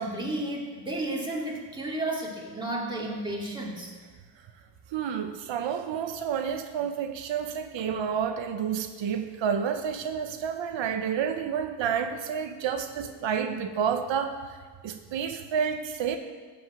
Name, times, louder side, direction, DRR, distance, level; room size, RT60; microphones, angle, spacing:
voice 1, 0.0-3.9, right 1 dB, 10° right, -3 dB, 2.6 m, -32 dB
voice 2, 4.9-14.4 14.8-16.2, right 7 dB, 85° right, 7 dB, 0.9 m, -30 dB
13.5 x 5.3 x 8.5 m, 1.5 s
wide cardioid pair, 135°, 44 cm